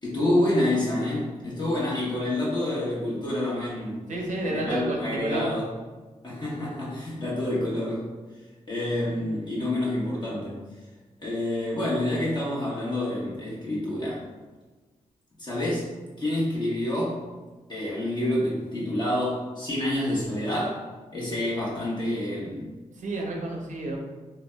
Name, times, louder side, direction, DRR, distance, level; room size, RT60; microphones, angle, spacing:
voice 1, 0.0-4.0 4.4-5.7 6.2-8.1 8.7-10.6 11.2-14.3 15.4-15.9 16.2-17.2 17.7-20.8 21.1-22.7, left 1 dB, 35° left, -6 dB, 1.2 m, -28 dB
voice 2, 4.1-5.5 23.0-24.0, right 1 dB, 70° right, 0 dB, 0.5 m, -30 dB
3.3 x 2.2 x 2.2 m, 1.3 s
cardioid pair, 50°, 13 cm